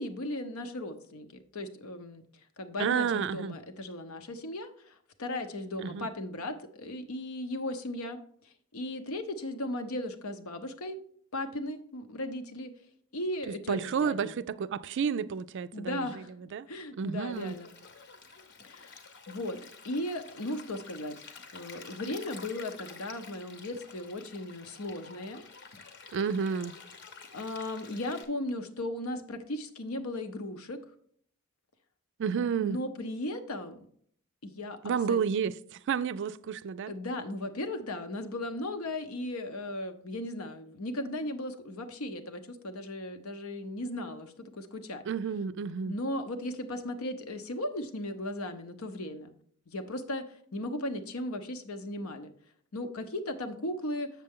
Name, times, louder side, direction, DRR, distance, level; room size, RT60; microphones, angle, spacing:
voice 1, 0.0-11.0 11.3-12.7 13.1-14.3 15.7-16.4 16.7-17.7 18.6-19.6 19.8-21.2 21.5-25.4 27.3-30.8 32.3-33.9 34.4-34.8 35.1-35.2 36.9-45.0 45.9-49.3 49.7-52.3 52.7-54.1, left 1 dB, 80° left, 0.8 m, -37 dB
voice 2, 2.8-3.5 5.8-6.1 13.5-16.2 16.5-16.7 17.0-17.6 26.1-26.7 32.2-32.8 34.8-36.9 45.1-46.0, right 6 dB, 55° right, 0.3 m, -31 dB
Stream, 17.3-28.2, left 5 dB, 55° left, 1.0 m, -50 dB
7.5 x 6.6 x 3.6 m
head